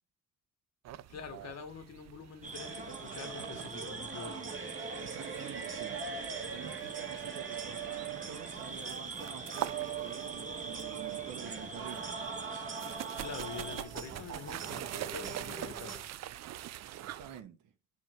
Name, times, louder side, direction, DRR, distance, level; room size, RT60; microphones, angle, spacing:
sound 1, 0.8-17.4, right 13 dB, 60° right, 0.5 m, -45 dB
voice 1, 1.1-4.5 13.2-16.0, left 6 dB, 60° left, 1.7 m, -45 dB
sound 2, 2.4-13.8, right 4 dB, 25° right, 0.9 m, -45 dB
sound 3, 2.5-16.0, right 6 dB, 40° right, 1.5 m, -42 dB
voice 2, 5.0-6.0 6.5-12.2 16.8-17.7, right 8 dB, 90° right, 1.1 m, -49 dB
7.6 x 3.6 x 4.5 m
cardioid pair, 90°, 30 cm